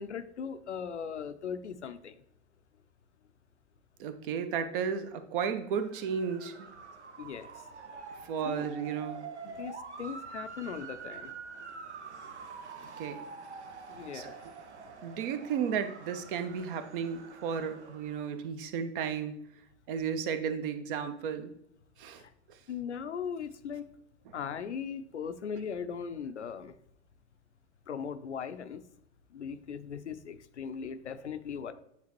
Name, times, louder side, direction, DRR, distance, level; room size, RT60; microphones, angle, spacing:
voice 1, 0.0-2.2 7.2-7.5 8.4-8.7 9.4-11.3 13.9-14.4 22.2-22.3 22.7-23.9 24.3-26.7 27.9-28.8 29.3-31.7, left 7 dB, 80° left, 11 dB, 0.6 m, -39 dB
voice 2, 4.0-6.7 8.3-9.2 13.0-13.2 14.1-14.3 15.0-19.3 19.9-21.5 22.0-22.2, right 7 dB, 50° right, 9 dB, 0.8 m, -33 dB
Motor vehicle (road) / Siren, 5.7-18.4, right 5 dB, 75° right, 0.8 m, -46 dB
8.7 x 3.6 x 3.0 m, 0.74 s
figure-of-eight pair, 90°, 34 cm